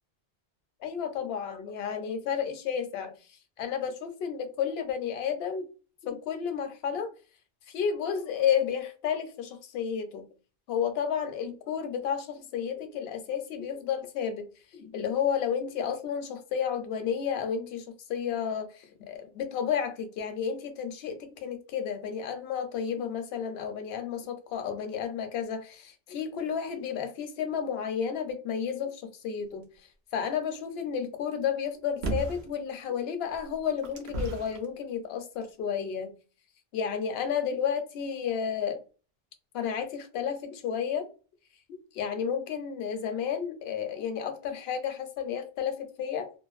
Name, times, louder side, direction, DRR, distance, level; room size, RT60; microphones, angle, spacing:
voice 1, 0.8-3.1 3.6-5.7 6.0-7.1 7.7-10.2 10.7-14.5 14.7-17.8 18.1-29.7 30.1-36.1 36.7-38.8 39.5-41.1 41.7-46.3, left 7 dB, 80° left, 0.8 m, -32 dB
sound 1, 32.0-32.5 33.3-34.6 35.4-35.5, right 3 dB, 90° right, 0.9 m, -34 dB
2.5 x 2.2 x 2.3 m
omnidirectional pair, 1.0 m